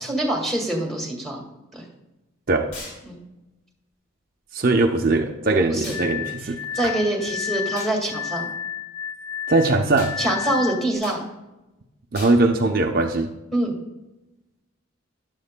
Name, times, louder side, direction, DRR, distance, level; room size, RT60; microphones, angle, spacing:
voice 1, 0.0-1.5 1.7-1.8 3.1-3.2 5.7-6.0 6.7-8.5 10.2-11.2 13.5-13.7, right 1 dB, ahead, -1 dB, 1.8 m, -25 dB
sound 1, 2.7-3.0 5.8-6.1 7.8-8.0 10.0-10.2 11.0-11.2 12.1-12.4, left 2 dB, 55° left, 3.0 m, -38 dB
voice 2, 4.5-6.6 9.5-10.2 12.1-13.3, right 2 dB, 45° right, 2 dB, 0.6 m, -20 dB
Glass, 5.9-10.9, left 9 dB, 25° left, 0.9 m, -32 dB
13.5 x 10.5 x 2.2 m, 1.0 s
head